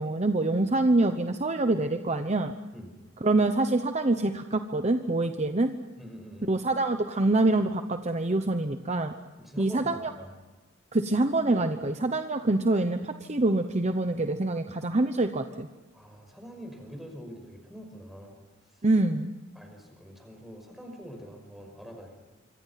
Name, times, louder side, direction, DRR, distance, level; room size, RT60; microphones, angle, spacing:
voice 1, 0.0-2.5 3.2-5.7 6.4-9.1 9.6-10.1 10.9-15.7 18.8-19.3, right 2 dB, 35° right, 8 dB, 1.0 m, -25 dB
voice 2, 6.0-6.5 9.4-10.3 15.9-18.4 19.5-22.3, equal, ahead, 3 dB, 5.9 m, -44 dB
26.5 x 25.0 x 5.9 m, 1.2 s
head